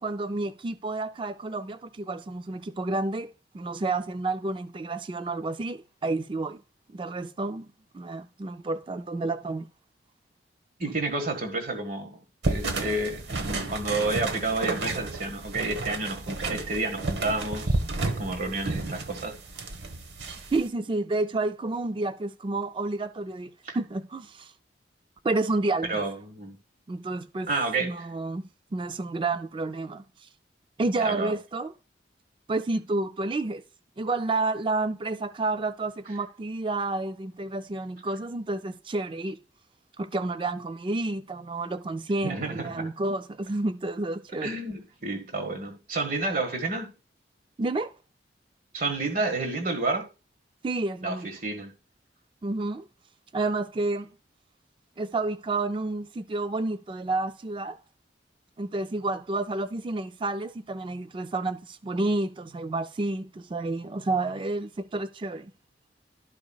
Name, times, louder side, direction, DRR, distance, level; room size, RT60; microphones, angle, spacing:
voice 1, 0.0-6.6 6.9-7.7 7.9-9.7 20.5-24.5 25.2-26.0 26.9-27.5 27.8-28.4 28.7-30.0 30.8-31.7 32.5-33.6 34.0-39.4 40.0-44.6 47.6-48.0 50.6-51.3 52.4-52.9 53.3-54.1 55.0-57.8 58.6-65.5, right 2 dB, 30° right, 0.4 m, -30 dB
voice 2, 10.8-12.2 12.5-13.2 13.7-19.4 23.6-23.8 25.9-26.6 27.5-28.1 31.0-31.3 42.2-42.9 44.4-46.9 48.7-50.1 51.0-51.7, right 2 dB, 50° right, 1.5 m, -30 dB
sound 1, 12.4-20.7, right 2 dB, 70° right, 0.9 m, -31 dB
12.5 x 4.9 x 2.3 m
head